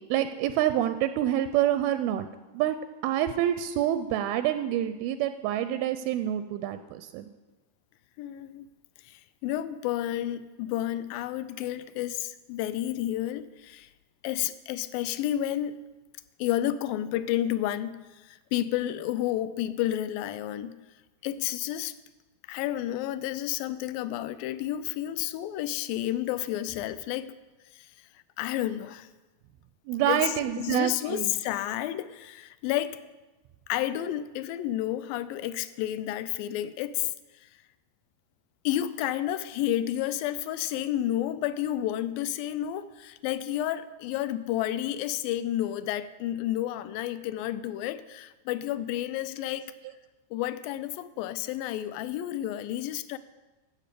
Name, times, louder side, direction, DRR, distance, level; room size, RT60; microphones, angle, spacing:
voice 1, 0.1-2.3 2.5-2.8 3.0-7.3 29.9-31.3, right 11 dB, 85° right, 10 dB, 2.4 m, -27 dB
voice 2, 8.2-8.7 9.0-13.9 14.2-15.8 16.4-20.8 21.2-21.9 22.5-27.4 27.7-27.9 28.4-29.1 30.1-33.0 33.7-37.1 37.4-37.5 38.7-49.7 50.3-53.2, left 12 dB, 80° left, 15 dB, 2.2 m, -31 dB
14.5 x 8.8 x 6.7 m, 1.2 s
omnidirectional pair, 4.5 m